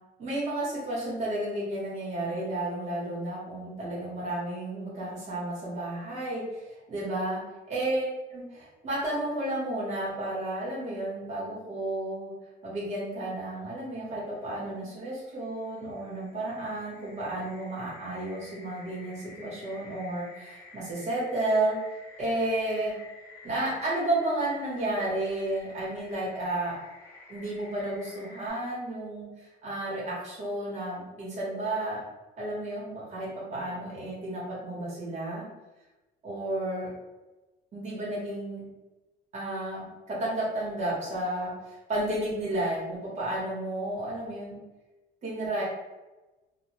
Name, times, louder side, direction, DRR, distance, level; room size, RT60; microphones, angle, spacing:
voice 1, 0.2-7.4 7.7-12.3 12.6-21.8 22.2-22.9 23.4-26.8 27.3-32.0 32.4-35.5 36.2-36.9 37.7-38.7 39.3-44.6 45.2-45.6, right 1 dB, 40° right, -6 dB, 1.0 m, -32 dB
sound 1, 14.5-28.5, left 2 dB, 15° left, 0.9 m, -51 dB
2.2 x 2.2 x 2.9 m, 1.1 s
cardioid pair, 180°, 19 cm